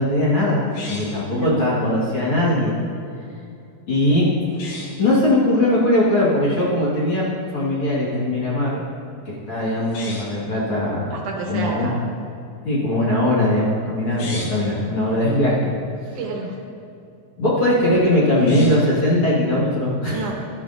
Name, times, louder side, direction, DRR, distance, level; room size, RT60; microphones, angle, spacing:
voice 1, 0.0-2.8 3.9-4.3 5.0-8.8 9.3-11.1 11.5-11.9 12.7-15.7 17.4-20.2, left 1 dB, 45° left, -7 dB, 2.0 m, -20 dB
sound 1, 0.7-1.3 4.5-5.0 9.8-10.4 14.0-14.7 18.3-19.0, left 2 dB, 75° left, 3.4 m, -36 dB
voice 2, 1.3-1.7 11.1-12.0 16.2-16.6 20.1-20.3, right 4 dB, 70° right, -1 dB, 2.2 m, -28 dB
12.5 x 11.0 x 2.6 m, 2.6 s
omnidirectional pair, 4.0 m